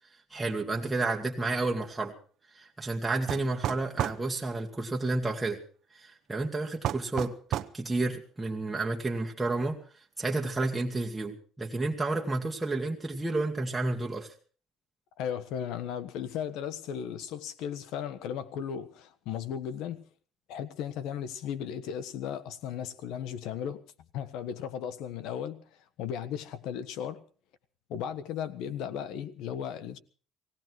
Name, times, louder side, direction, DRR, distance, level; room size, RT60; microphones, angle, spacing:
voice 1, 0.3-2.1 2.5-5.6 5.9-7.3 7.7-9.8 10.2-14.3, right 2 dB, 10° right, 1.9 m, -31 dB
sound 1, 3.3-4.2 6.8-7.8, right 11 dB, 60° right, 0.8 m, -31 dB
voice 2, 15.2-20.1 20.5-23.8 24.1-25.6 26.0-27.2 27.9-30.0, left 9 dB, 75° left, 1.4 m, -36 dB
17.5 x 17.5 x 4.7 m
cardioid pair, 115°, 0 cm